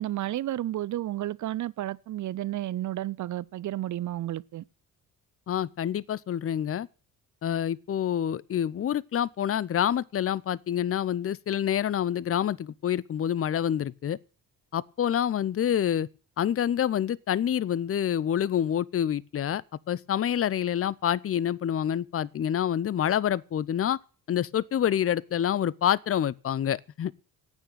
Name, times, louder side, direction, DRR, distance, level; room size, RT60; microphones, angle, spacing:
voice 1, 0.0-4.6, right 14 dB, 40° right, 0.6 m, -32 dB
voice 2, 5.5-6.9 7.4-14.2 14.7-16.1 16.4-19.6 19.9-24.0 24.3-27.1, left 10 dB, 30° left, 0.7 m, -27 dB
14.0 x 9.1 x 8.9 m
figure-of-eight pair, 45°, 45 cm